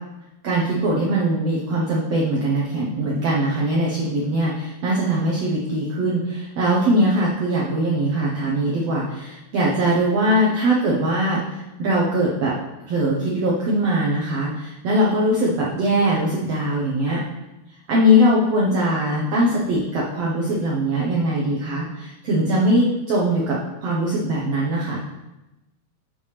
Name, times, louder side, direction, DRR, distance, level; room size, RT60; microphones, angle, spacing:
voice 1, 0.4-12.6 12.9-17.2 17.9-25.0, equal, 80° right, -5 dB, 1.4 m, -21 dB
7.4 x 7.0 x 3.3 m, 0.99 s
omnidirectional pair, 4.3 m